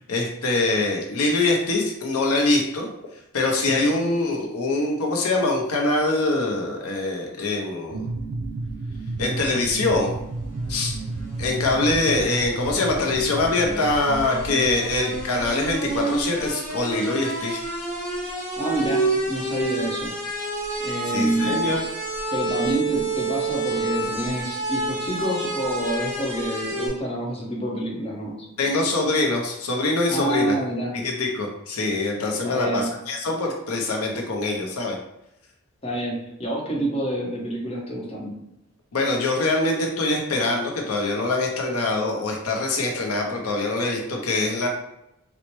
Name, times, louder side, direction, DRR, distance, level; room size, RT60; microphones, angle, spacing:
voice 1, 0.1-2.9 3.3-8.1 9.2-10.1 10.7-11.0 11.4-17.6 21.1-21.8 28.6-30.6 30.9-35.0 38.9-44.7, left 2 dB, 80° left, 1 dB, 0.6 m, -24 dB
voice 2, 3.6-4.1 18.6-20.1 20.8-21.6 22.3-28.4 30.1-31.0 32.4-32.9 35.8-38.3, right 1 dB, 25° left, -4 dB, 0.8 m, -27 dB
sound 1, 7.9-16.5, right 2 dB, 55° right, 0.3 m, -33 dB
sound 2, 10.1-26.9, right 2 dB, 10° left, 1.1 m, -29 dB
4.1 x 2.0 x 3.0 m, 0.84 s
head